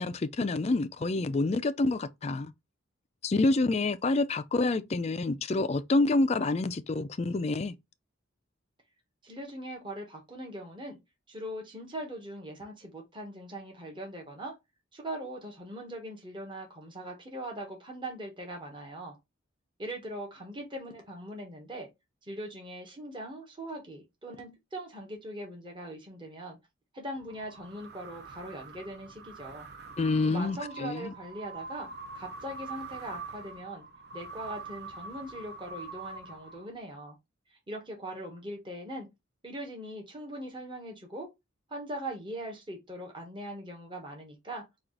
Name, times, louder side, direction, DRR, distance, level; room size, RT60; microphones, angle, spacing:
voice 1, 0.0-2.5 3.2-7.7 30.0-31.1, left 2 dB, 30° left, 0.3 m, -27 dB
voice 2, 9.2-11.0 11.3-14.5 14.9-19.2 19.8-21.9 22.2-26.6 26.9-29.7 30.2-31.9 32.1-33.9 34.1-37.2 37.5-39.1 39.4-41.3 41.7-44.6, right 1 dB, 25° right, 1.1 m, -41 dB
sound 1, 27.2-36.9, right 4 dB, 50° right, 0.6 m, -45 dB
4.5 x 2.4 x 3.7 m
head